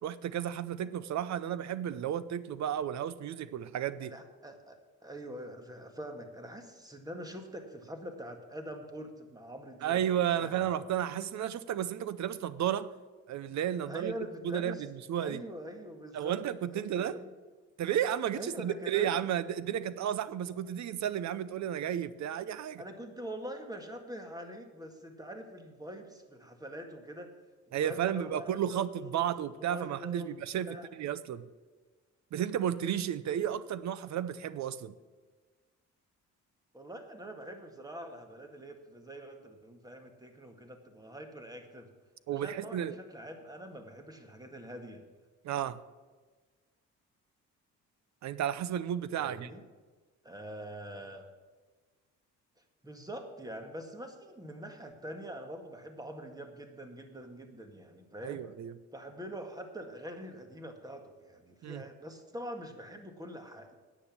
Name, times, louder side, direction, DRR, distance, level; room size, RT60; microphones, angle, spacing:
voice 1, 0.0-4.1 9.8-12.9 13.3-14.1 14.4-14.8 15.1-15.4 16.1-17.2 17.8-22.8 27.7-31.5 32.3-34.9 42.3-43.0 45.4-45.8 48.2-49.5 58.2-58.7 61.6-61.8, right 10 dB, 65° right, 17 dB, 0.7 m, -33 dB
voice 2, 4.0-10.0 10.4-10.6 13.8-14.9 15.2-16.4 16.7-17.3 18.3-19.2 22.8-27.4 27.7-30.3 30.6-30.9 36.7-41.9 42.3-45.0 49.2-49.6 50.2-51.3 52.8-58.4 58.9-63.7, equal, 10° right, 5 dB, 1.9 m, -44 dB
9.9 x 8.5 x 7.1 m, 1.4 s
cardioid pair, 90°, 30 cm